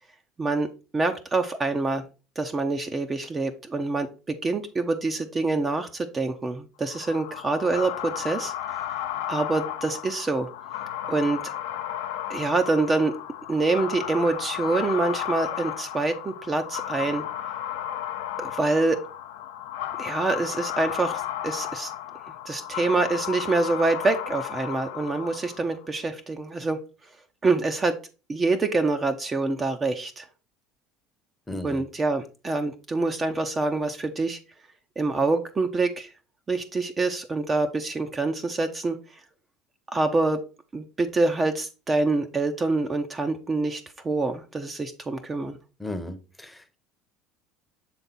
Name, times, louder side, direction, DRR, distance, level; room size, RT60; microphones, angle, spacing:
voice 1, 0.9-2.0 2.4-8.5 9.0-10.5 11.1-11.5 12.3-13.1 13.5-17.2 18.4-19.0 20.0-21.9 22.4-26.8 27.4-28.0 28.3-30.3 31.6-34.4 35.0-36.1 36.5-39.0 39.9-40.4 40.7-45.6, right 3 dB, 25° right, 6 dB, 0.7 m, -26 dB
sound 1, 6.9-25.8, left 11 dB, 90° left, 0.7 m, -34 dB
voice 2, 31.5-31.8 45.8-46.8, left 1 dB, 5° left, 9 dB, 0.9 m, -35 dB
6.9 x 3.5 x 4.1 m, 0.32 s
supercardioid pair, 100°, 0 cm